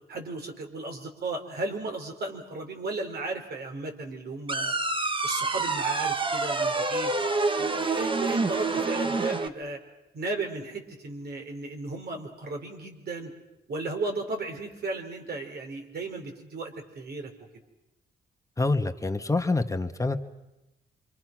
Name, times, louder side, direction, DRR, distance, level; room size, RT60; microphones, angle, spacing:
voice 1, 0.1-4.7 5.2-7.1 7.6-9.8 10.1-13.3 13.7-17.3, right 3 dB, 65° right, 3 dB, 4.5 m, -35 dB
sound 1, 4.5-9.5, right 3 dB, 30° right, 1.5 m, -27 dB
voice 2, 18.6-20.2, left 3 dB, 20° left, 6 dB, 1.6 m, -26 dB
27.0 x 25.5 x 6.2 m, 0.95 s
cardioid pair, 75°, 18 cm